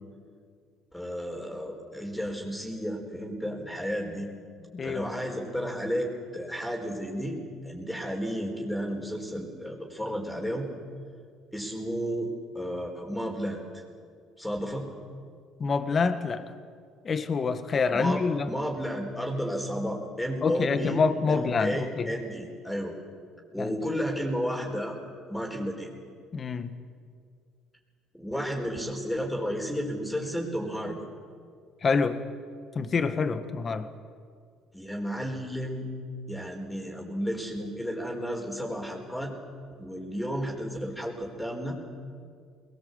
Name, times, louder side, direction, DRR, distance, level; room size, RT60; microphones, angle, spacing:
voice 1, 0.9-4.3 4.8-7.4 7.6-10.7 11.5-13.6 14.4-14.9 17.9-21.0 21.3-22.9 23.5-25.0 25.3-25.9 28.1-31.0 34.7-35.9 36.3-39.3 39.8-41.8, equal, 5° left, 1 dB, 4.5 m, -32 dB
voice 2, 4.7-5.1 15.6-16.5 17.0-18.5 20.4-22.1 23.6-23.7 26.3-26.7 31.8-32.2 32.7-33.9, left 4 dB, 35° left, 10 dB, 1.7 m, -26 dB
21.5 x 20.0 x 8.2 m, 2.2 s
supercardioid pair, 95°, 0 cm